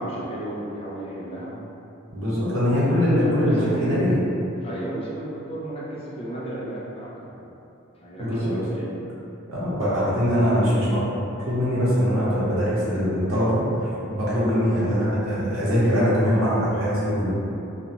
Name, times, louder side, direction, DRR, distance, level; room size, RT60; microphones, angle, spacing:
voice 1, 0.0-1.5 2.9-3.8 4.6-7.4 8.0-8.9, right 1 dB, 30° left, -7 dB, 0.4 m, -34 dB
voice 2, 2.1-4.2 8.2-8.5 9.5-11.0 11.4-17.3, equal, 85° right, -9 dB, 0.9 m, -22 dB
2.5 x 2.2 x 2.9 m, 2.8 s
head